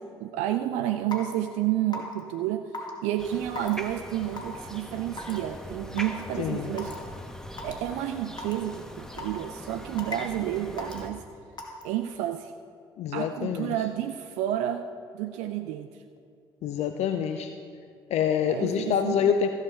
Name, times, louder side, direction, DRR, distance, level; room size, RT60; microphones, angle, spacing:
voice 1, 0.0-7.0 7.6-11.2 11.8-12.5 13.1-14.9 15.1-16.0 18.5-19.3, right 12 dB, 70° right, 8 dB, 0.4 m, -30 dB
Raindrop / Water tap faucet / Drip, 1.1-1.3 1.9-2.2 2.7-2.9 3.6-3.7 4.4-4.6 5.2-5.4 6.0-6.1 6.8-7.0 7.6-7.7 8.4-8.5 9.2-9.5 10.0-10.3 10.8-11.0 11.6-11.8, left 3 dB, 35° left, 2.1 m, -36 dB
sound 1, 3.2-11.1, equal, 5° left, 1.3 m, -41 dB
voice 2, 6.4-6.7 13.0-13.7 16.6-17.5 18.1-19.5, left 8 dB, 60° left, 8 dB, 0.5 m, -26 dB
15.0 x 7.6 x 4.5 m, 2.4 s
hypercardioid pair, 50°, 13 cm